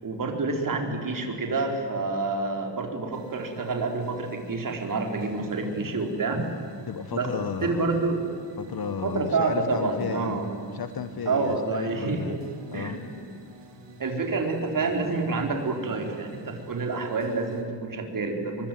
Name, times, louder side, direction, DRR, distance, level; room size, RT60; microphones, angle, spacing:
voice 1, 0.0-6.4 7.1-7.3 7.6-8.2 9.0-10.5 11.2-12.4 12.7-13.3 14.0-18.7, right 3 dB, 45° right, 3 dB, 4.5 m, -28 dB
sound 1, 3.1-17.6, right 4 dB, 70° right, 4.4 m, -46 dB
voice 2, 6.9-7.9 8.6-10.4 10.7-12.4 12.7-13.0, left 7 dB, 55° left, 11 dB, 1.3 m, -34 dB
26.0 x 23.5 x 9.5 m, 2.3 s
wide cardioid pair, 145°, 43 cm